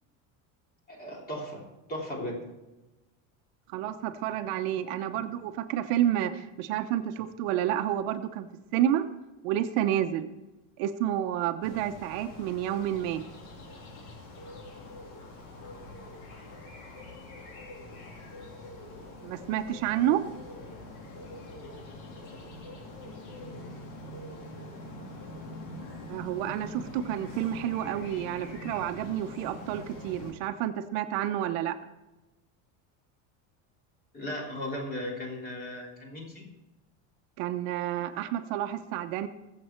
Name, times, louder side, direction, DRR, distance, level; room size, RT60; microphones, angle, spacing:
voice 1, 0.9-1.6 1.9-2.4 34.1-36.4, left 1 dB, 20° left, -1 dB, 3.3 m, -36 dB
voice 2, 3.7-8.5 8.7-9.0 9.4-10.3 10.8-13.2 19.2-20.2 26.1-31.8 37.4-39.3, right 11 dB, 70° right, 8 dB, 1.0 m, -29 dB
sound 1, 11.6-30.3, left 2 dB, 80° left, 3.6 m, -44 dB
20.5 x 7.9 x 4.5 m, 1.1 s
cardioid pair, 165°, 42 cm